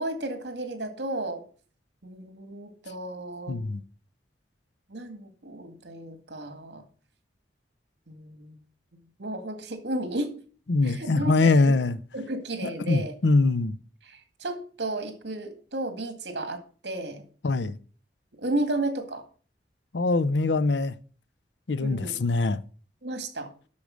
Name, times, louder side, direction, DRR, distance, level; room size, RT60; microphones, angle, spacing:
voice 1, 0.0-1.4 2.0-3.6 4.9-6.9 8.1-8.6 9.2-10.3 10.8-11.8 12.1-13.1 14.0-17.2 18.4-19.2 21.8-22.2 23.0-23.5, right 1 dB, 75° right, 2.0 m, -33 dB
voice 2, 3.5-3.8 10.7-12.0 12.6-13.7 17.4-17.8 19.9-20.9 21.7-22.6, left 3 dB, 85° left, 0.6 m, -23 dB
8.5 x 6.5 x 6.3 m
head